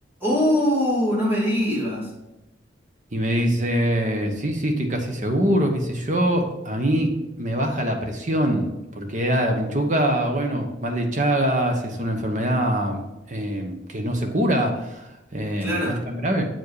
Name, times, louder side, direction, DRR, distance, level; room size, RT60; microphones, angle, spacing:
voice 1, 0.2-2.1 15.6-16.0, equal, 10° right, -7 dB, 2.8 m, -22 dB
voice 2, 3.1-7.1 7.4-13.0 13.3-16.5, right 1 dB, 40° right, 3 dB, 1.0 m, -24 dB
7.7 x 4.9 x 4.8 m, 0.96 s
head